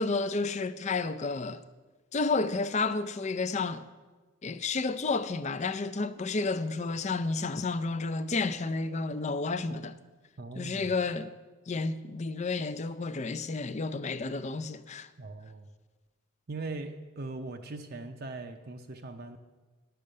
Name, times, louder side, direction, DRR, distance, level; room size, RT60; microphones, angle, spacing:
voice 1, 0.0-1.6 2.1-3.8 4.4-10.0 10.6-11.3 11.7-15.1, left 3 dB, 30° left, 0.4 m, -31 dB
voice 2, 10.4-10.9 15.2-15.7 16.5-19.4, right 3 dB, 45° right, 0.6 m, -40 dB
10.5 x 6.9 x 7.6 m
head